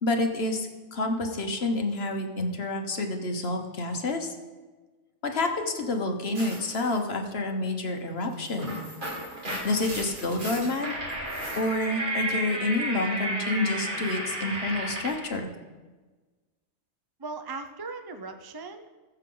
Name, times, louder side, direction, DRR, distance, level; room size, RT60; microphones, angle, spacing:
voice 1, 0.0-4.3 5.2-8.7 9.6-10.9 11.6-15.5, left 2 dB, 60° left, 4 dB, 1.4 m, -28 dB
sound 1, 6.3-7.0 8.3-15.3, right 1 dB, 45° right, 2.3 m, -33 dB
voice 2, 17.2-18.9, right 3 dB, 25° right, 7 dB, 0.5 m, -38 dB
20.0 x 6.9 x 3.8 m, 1.3 s
omnidirectional pair, 1.2 m